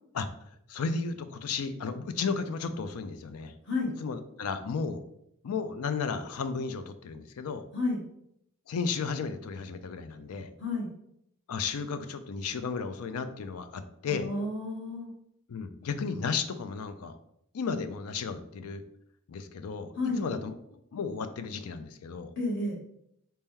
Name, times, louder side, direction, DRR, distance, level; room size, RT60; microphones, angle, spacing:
voice 1, 0.7-3.5 4.0-5.0 5.4-7.6 8.7-10.5 11.5-14.3 15.5-17.2 17.5-18.8 19.3-22.3, left 5 dB, 80° left, 10 dB, 0.4 m, -34 dB
voice 2, 10.6-10.9 14.1-15.1 20.0-20.2 22.4-22.8, left 2 dB, 55° left, -1 dB, 0.9 m, -31 dB
4.3 x 2.9 x 3.6 m, 0.75 s
head